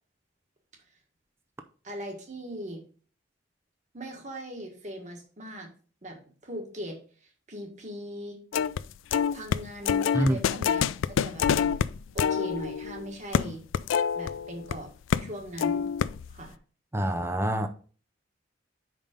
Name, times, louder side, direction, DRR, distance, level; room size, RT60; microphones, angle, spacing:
voice 1, 1.8-2.8 3.9-5.7 6.0-8.4 9.3-11.5 12.1-13.6 14.1-14.9 15.2-15.9 16.3-16.6, right 1 dB, 40° right, 1.5 m, -40 dB
sound 1, 8.5-8.8 9.1-14.7 15.1-15.3 15.6-16.4, left 7 dB, 85° left, 0.3 m, -26 dB
voice 2, 16.9-17.7, right 1 dB, 15° right, 0.5 m, -26 dB
5.5 x 5.2 x 5.2 m
head